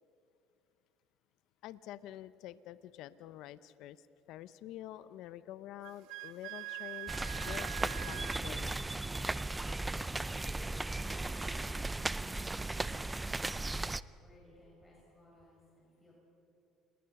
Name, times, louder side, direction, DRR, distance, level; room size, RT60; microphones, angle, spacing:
voice 1, 1.6-8.9, left 13 dB, 75° left, 15 dB, 0.6 m, -48 dB
Wind instrument woodwind instrument, 5.8-8.4, right 18 dB, 80° right, 0.8 m, -44 dB
sound 1, 7.1-14.0, right 2 dB, 15° right, 0.5 m, -36 dB
voice 2, 10.3-16.2, left 1 dB, 10° left, -5 dB, 6.3 m, -61 dB
28.0 x 20.5 x 5.9 m, 2.6 s
supercardioid pair, 100°, 0 cm